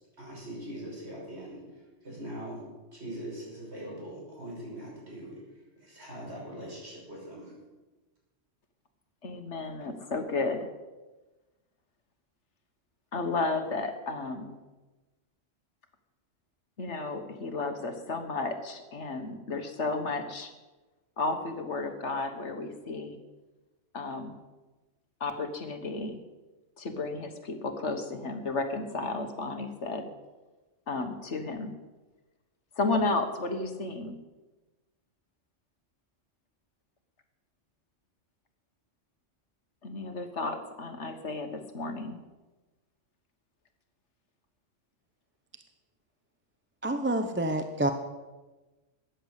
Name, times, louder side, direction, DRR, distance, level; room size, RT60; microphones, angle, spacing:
voice 1, 0.2-1.6 2.0-2.6 2.9-5.4 5.8-7.5, right 1 dB, 60° right, -4 dB, 6.3 m, -41 dB
voice 2, 9.2-10.7 13.1-14.6 16.8-20.5 21.2-23.2 23.9-24.4 25.2-26.2 26.8-30.1 30.9-31.7 32.8-34.2 39.8-42.2, left 3 dB, 65° left, 6 dB, 1.7 m, -33 dB
voice 3, 46.8-47.9, right 1 dB, 10° right, 7 dB, 0.8 m, -28 dB
14.0 x 9.4 x 8.2 m, 1.2 s
omnidirectional pair, 1.3 m